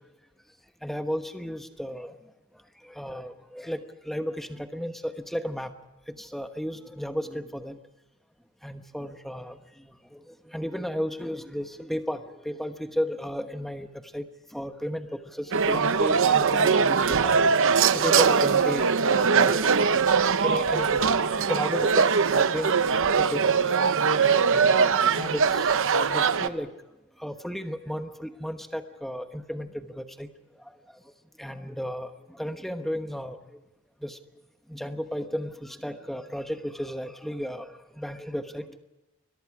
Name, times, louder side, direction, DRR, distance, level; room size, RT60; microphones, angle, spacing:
voice 1, 0.8-2.1 2.9-5.7 6.2-7.8 8.6-9.6 10.1-10.2 10.5-13.9 14.1-14.3 14.5-17.3 17.9-19.9 20.4-21.1 21.4-22.9 23.2-23.5 24.5-26.7 27.2-30.3 31.4-33.4 34.0-34.2 34.7-38.6, equal, ahead, 7 dB, 1.2 m, -34 dB
sound 1, 15.5-26.5, right 5 dB, 60° right, 0.8 m, -22 dB
29.5 x 22.5 x 4.9 m, 1.0 s
head